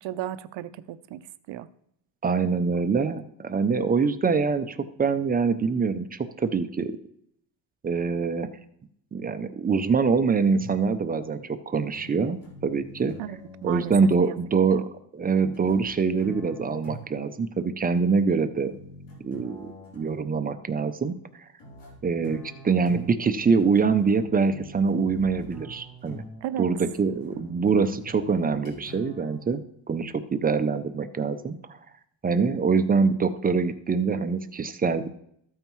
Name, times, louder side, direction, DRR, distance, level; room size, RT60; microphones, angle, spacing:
voice 1, 0.0-1.2 1.5-1.7 13.2-13.9 26.4-26.7, right 12 dB, 80° right, 0.6 m, -34 dB
voice 2, 2.2-6.9 7.8-8.5 9.1-12.4 12.6-13.2 13.6-14.9 15.1-18.7 19.2-21.4 22.0-26.2 26.6-31.8 32.2-35.1, right 5 dB, 20° right, 0.4 m, -24 dB
sound 1, 10.6-11.0 11.9-14.0 15.5-17.3 18.6-20.3 21.6-29.4, right 1 dB, 70° left, 4.4 m, -45 dB
13.5 x 8.9 x 3.1 m
cardioid pair, 170°, 43 cm